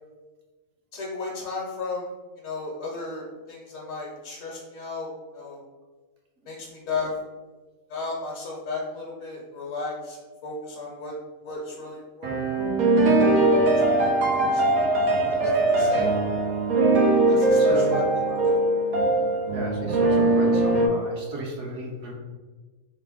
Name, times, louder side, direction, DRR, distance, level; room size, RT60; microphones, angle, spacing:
voice 1, 0.9-2.1 2.4-5.6 6.5-7.1 7.9-11.1 11.4-12.3 13.6-13.7 14.0-14.6 15.3-16.6 17.3-18.5, left 3 dB, 70° left, -3 dB, 1.1 m, -34 dB
sound 1, 12.2-20.9, right 2 dB, 85° right, 1.2 m, -21 dB
voice 2, 17.5-18.0 19.5-22.1, equal, 60° right, 0 dB, 1.0 m, -34 dB
3.6 x 3.3 x 3.5 m, 1.3 s
omnidirectional pair, 1.5 m